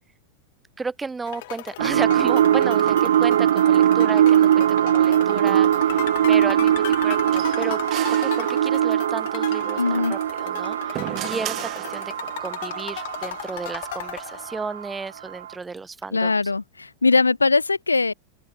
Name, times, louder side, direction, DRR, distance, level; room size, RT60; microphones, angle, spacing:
voice 1, 0.8-7.8 8.2-16.3, right 4 dB, 10° right, 2.0 m, -33 dB
sound 1, 1.3-14.9, left 18 dB, 50° left, 3.7 m, -37 dB
sound 2, 1.8-14.9 15.4-15.5, right 10 dB, 60° right, 1.3 m, -21 dB
sound 3, 7.3-9.1 10.4-12.4, right 14 dB, 35° right, 1.4 m, -35 dB
voice 2, 9.8-10.2 10.8-10.9 16.1-18.1, left 3 dB, 80° left, 1.9 m, -21 dB
open air
figure-of-eight pair, 90°, 0 cm